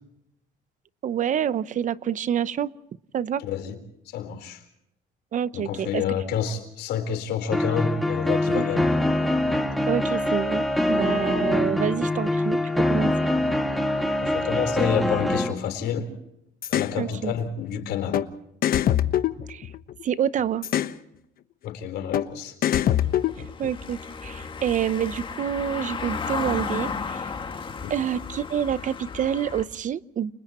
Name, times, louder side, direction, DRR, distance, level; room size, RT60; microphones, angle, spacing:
voice 1, 1.0-2.7 3.1-3.4 5.3-6.0 8.5-8.7 9.9-13.3 17.0-17.3 19.5-19.7 20.0-20.6 23.4-27.3 27.9-30.3, right 9 dB, 50° right, 16 dB, 0.8 m, -27 dB
voice 2, 3.4-3.7 4.1-4.6 5.5-9.0 14.2-16.1 16.7-18.2 21.6-22.6 27.8-27.9, left 8 dB, 75° left, 7 dB, 4.2 m, -29 dB
sound 1, 7.5-15.5, left 1 dB, ahead, 2.1 m, -24 dB
sound 2, 16.6-16.9 18.1-18.3 18.6-20.0 20.6-21.0 22.1-22.3 22.6-23.7, left 11 dB, 60° left, 1.2 m, -23 dB
Car passing by / Engine, 22.9-29.6, left 5 dB, 30° left, 2.1 m, -34 dB
30.0 x 29.5 x 3.0 m, 0.79 s
cardioid pair, 110°, 17 cm